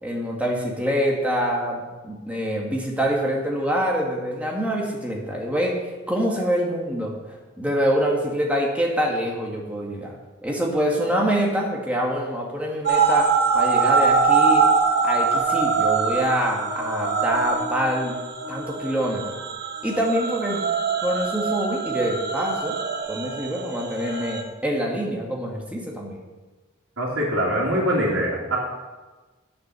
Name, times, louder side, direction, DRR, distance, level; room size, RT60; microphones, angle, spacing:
voice 1, 0.0-5.8 6.1-7.1 7.6-10.1 10.4-13.3 13.5-14.6 15.0-18.2 18.5-19.4 19.8-20.6 21.0-22.8 23.1-26.2, equal, 5° right, -2 dB, 1.8 m, -25 dB
sound 1, 12.9-24.4, right 5 dB, 55° right, 1.3 m, -23 dB
voice 2, 27.0-28.6, equal, 90° right, -7 dB, 2.6 m, -23 dB
8.8 x 7.7 x 7.0 m, 1.3 s
head